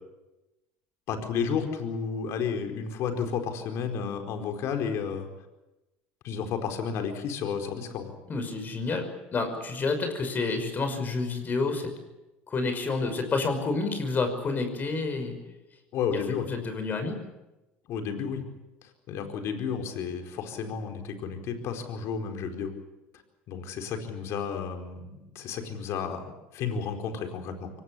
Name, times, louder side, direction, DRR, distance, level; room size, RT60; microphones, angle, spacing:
voice 1, 1.1-5.3 6.2-8.1 15.9-16.5 17.9-18.4 18.8-22.7 23.5-27.7, left 6 dB, 60° left, 5 dB, 4.6 m, -32 dB
voice 2, 8.3-9.1 9.3-11.9 12.5-15.4 16.5-17.2, left 3 dB, 35° left, 7 dB, 5.7 m, -29 dB
23.5 x 19.0 x 8.7 m, 1.0 s
hypercardioid pair, 85°, 5 cm